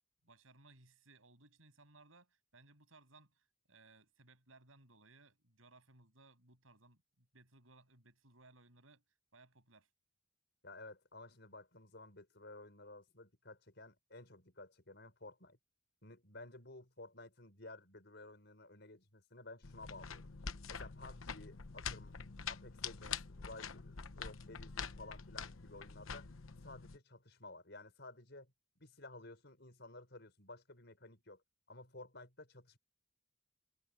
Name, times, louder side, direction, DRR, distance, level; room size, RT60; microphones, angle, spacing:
voice 1, 0.2-9.0 9.3-9.9, right 3 dB, 85° right, 7.2 m, -64 dB
voice 2, 10.6-15.6 16.0-20.3 20.7-22.1 22.5-26.3 26.6-28.5 28.8-31.4 31.7-32.8, left 2 dB, 55° left, 6.0 m, -54 dB
sound 1, 19.6-27.0, left 6 dB, 85° left, 1.0 m, -46 dB
head